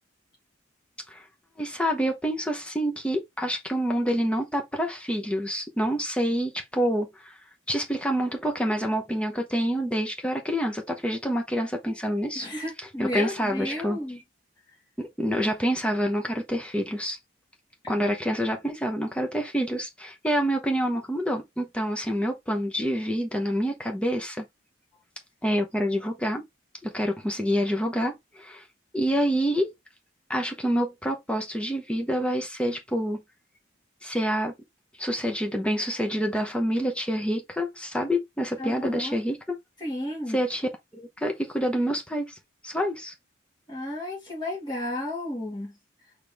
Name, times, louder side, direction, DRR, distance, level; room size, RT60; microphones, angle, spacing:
voice 1, 1.6-7.3 7.7-12.5 13.0-14.0 15.0-17.2 17.9-24.4 25.4-26.4 26.8-28.6 28.9-29.7 30.3-33.2 34.0-34.5 35.0-39.6 40.3-42.3 42.6-43.1, equal, 5° left, 0.9 m, -27 dB
voice 2, 12.3-14.2 38.6-39.2 39.8-40.4 43.7-45.8, left 1 dB, 20° left, 2.5 m, -33 dB
4.5 x 3.5 x 3.3 m
head